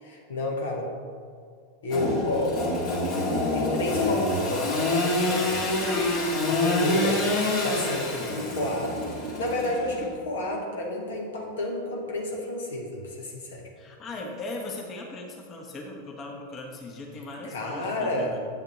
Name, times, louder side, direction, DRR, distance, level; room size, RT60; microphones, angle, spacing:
voice 1, 0.0-0.9 1.8-2.6 3.5-5.6 6.4-7.2 7.6-13.7 17.5-18.4, left 1 dB, 60° left, 0 dB, 1.3 m, -30 dB
Engine / Sawing, 1.9-10.1, left 2 dB, 45° left, 2.4 m, -26 dB
voice 2, 13.8-18.4, left 2 dB, 30° left, 0 dB, 1.3 m, -38 dB
9.4 x 8.9 x 3.2 m, 2.2 s
figure-of-eight pair, 90°, 0 cm